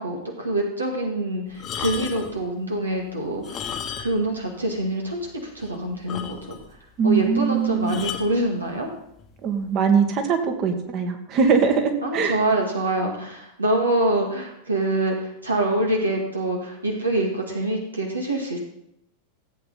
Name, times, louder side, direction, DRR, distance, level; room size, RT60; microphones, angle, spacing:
voice 1, 0.0-3.7 4.0-6.6 7.0-8.9 12.0-18.6, right 1 dB, 80° right, 0 dB, 2.0 m, -25 dB
sound 1, 1.5-2.4 3.3-4.3 4.6-4.7 5.3-5.4 5.6-5.7 6.1-6.7 7.9-8.3 9.2-9.4, left 7 dB, 30° left, 1.2 m, -33 dB
voice 2, 7.0-7.9 9.4-12.4, right 5 dB, 35° right, 5 dB, 1.8 m, -21 dB
15.5 x 8.5 x 4.2 m, 0.77 s
figure-of-eight pair, 90°, 0 cm